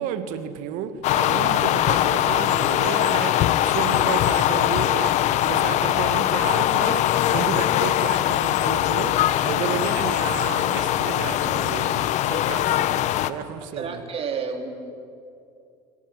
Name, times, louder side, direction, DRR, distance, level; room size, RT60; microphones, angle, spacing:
voice 1, 0.0-14.0, right 9 dB, 60° right, 2.0 m, -32 dB
sound 1, 1.0-13.3, left 12 dB, 50° left, 1.1 m, -21 dB
voice 2, 13.7-14.9, right 5 dB, 40° right, 3.9 m, -30 dB
23.5 x 19.5 x 10.0 m
hypercardioid pair, 80°, 15 cm